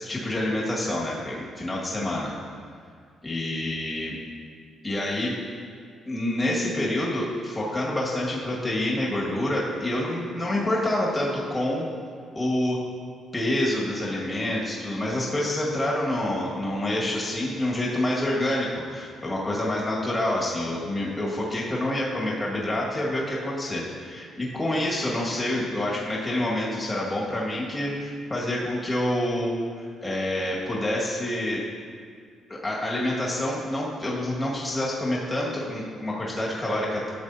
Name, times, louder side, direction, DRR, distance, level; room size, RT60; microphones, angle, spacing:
voice 1, 0.0-2.4 3.2-4.2 4.8-5.4 6.1-11.9 12.3-12.8 13.3-31.6 32.5-37.1, left 1 dB, 25° left, -5 dB, 1.9 m, -27 dB
13.0 x 6.9 x 2.8 m, 2.1 s
cardioid pair, 90°, 0 cm